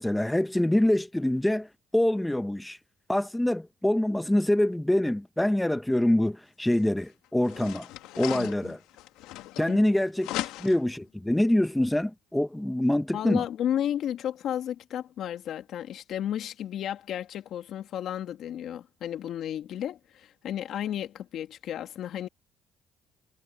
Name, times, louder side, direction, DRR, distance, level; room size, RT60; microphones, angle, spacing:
voice 1, 0.0-1.7 1.9-2.8 3.1-7.9 8.2-8.8 9.6-10.3 10.6-13.4, left 1 dB, 5° left, 0.9 m, -25 dB
sound 1, 6.7-6.8 7.4-9.9 10.2-11.0, left 16 dB, 85° left, 1.8 m, -38 dB
voice 2, 8.3-8.8 9.7-9.8 10.3-10.5 13.1-22.3, left 10 dB, 65° left, 2.3 m, -33 dB
supercardioid pair, 85°, 0 cm